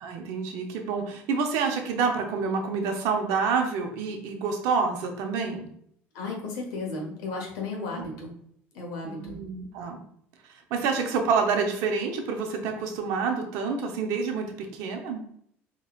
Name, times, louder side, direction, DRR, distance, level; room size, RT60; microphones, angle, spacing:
voice 1, 0.0-5.7 8.0-8.1 9.0-10.0 10.7-15.2, right 5 dB, 75° right, 4 dB, 0.7 m, -28 dB
voice 2, 6.1-8.3 8.7-9.4, left 3 dB, 80° left, 0 dB, 1.2 m, -34 dB
4.1 x 3.0 x 2.4 m, 0.68 s
supercardioid pair, 80°, 6 cm